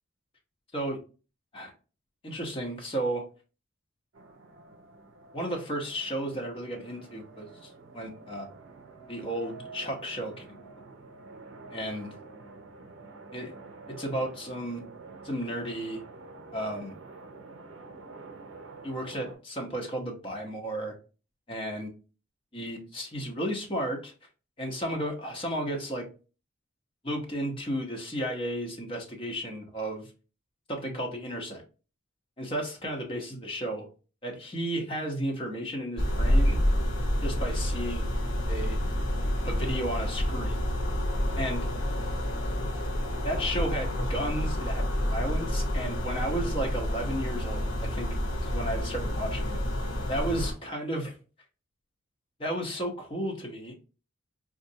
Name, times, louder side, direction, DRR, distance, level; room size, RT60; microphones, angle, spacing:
voice 1, 2.2-3.3 5.3-8.5 9.1-10.5 11.7-12.1 13.3-13.6 13.9-14.8 15.2-16.0 16.5-16.9 18.8-20.9 21.5-21.9 22.5-24.1 24.6-26.1 27.0-30.1 30.7-31.6 32.4-33.9 34.2-36.6 37.2-38.1 38.5-38.9 39.4-40.6 41.3-41.7 43.2-48.1 48.4-49.6 50.1-51.2 52.4-53.7, right 1 dB, 25° left, 1 dB, 0.8 m, -33 dB
sound 1, 4.1-19.3, right 3 dB, 60° right, 0.6 m, -48 dB
sound 2, 36.0-50.5, equal, 65° left, 0.8 m, -28 dB
4.0 x 2.4 x 2.7 m, 0.34 s
head